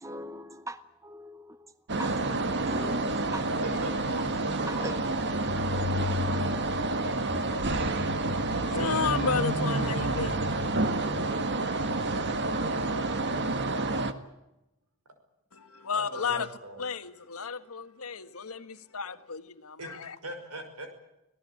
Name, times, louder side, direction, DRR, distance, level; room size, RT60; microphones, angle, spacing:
voice 1, 0.0-1.7 2.0-2.1 2.7-3.9 4.2-4.3 4.7-4.9, right 1 dB, 15° right, 0.8 m, -40 dB
sound 1, 1.9-14.1, right 2 dB, 55° right, 1.7 m, -29 dB
voice 2, 3.6-5.1 13.3-13.4 15.9-16.9 19.8-19.9 20.2-20.9, right 1 dB, 80° right, 5.8 m, -40 dB
voice 3, 8.5-10.6 15.5-20.2, left 5 dB, 70° left, 1.6 m, -33 dB
26.0 x 18.5 x 8.6 m
head